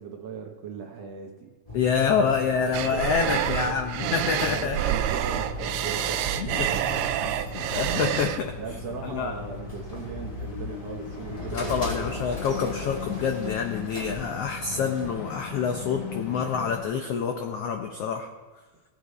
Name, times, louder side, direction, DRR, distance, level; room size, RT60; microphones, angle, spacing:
voice 1, 0.0-1.5 2.9-3.8 4.4-7.1 8.6-11.9, right 6 dB, 65° right, 2 dB, 1.7 m, -38 dB
voice 2, 1.7-4.8 6.4-6.7 6.9-8.5 9.0-9.3 11.5-18.3, left 6 dB, 85° left, 4 dB, 1.3 m, -27 dB
sound 1, 1.7-15.1, left 3 dB, 20° left, 1.0 m, -38 dB
sound 2, 2.7-8.4, right 11 dB, 85° right, 1.6 m, -28 dB
sound 3, 6.7-16.8, left 5 dB, 70° left, 0.7 m, -40 dB
17.5 x 8.0 x 4.1 m, 1.3 s
omnidirectional pair, 3.7 m